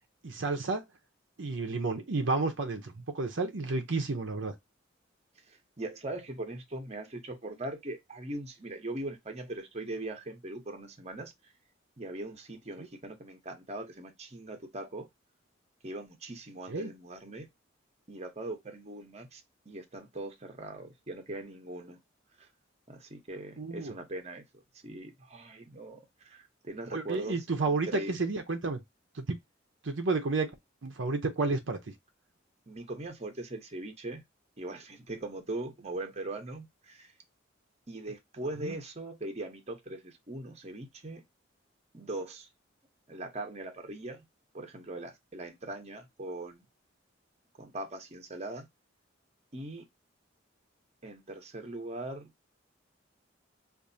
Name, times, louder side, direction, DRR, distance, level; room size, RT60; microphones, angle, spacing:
voice 1, 0.2-0.8 1.4-4.5 12.8-12.9 16.7-16.9 23.6-23.9 26.9-28.8 29.1-29.4 29.8-30.5 30.8-31.8 38.6-38.7, right 3 dB, 70° right, 0.7 m, -31 dB
voice 2, 5.5-11.3 12.0-15.1 15.8-17.5 18.1-22.0 22.4-22.5 22.9-24.4 24.8-28.2 32.7-34.2 34.6-37.1 37.9-41.2 41.9-42.5 43.1-44.2 44.5-46.6 47.6-48.7 49.5-49.8 51.0-52.3, right 2 dB, 35° right, 0.9 m, -40 dB
4.8 x 2.6 x 2.6 m
head